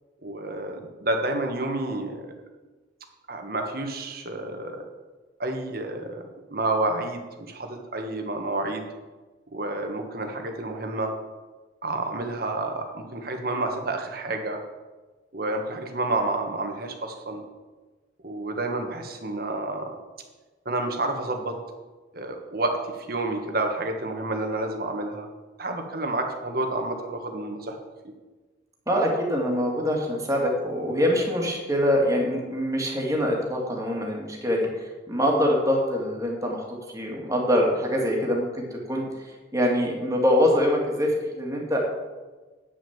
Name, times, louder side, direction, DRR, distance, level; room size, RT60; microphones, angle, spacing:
voice 1, 0.2-2.3 3.3-4.8 5.4-8.9 9.5-11.1 11.8-14.6 15.3-17.4 18.2-19.9 20.6-21.5 22.1-25.3 25.6-27.7, right 2 dB, 55° right, 4 dB, 1.5 m, -29 dB
voice 2, 28.9-34.7 35.1-36.6 36.9-39.0 39.5-41.8, equal, 20° right, -1 dB, 2.1 m, -24 dB
9.7 x 6.3 x 7.2 m, 1.3 s
head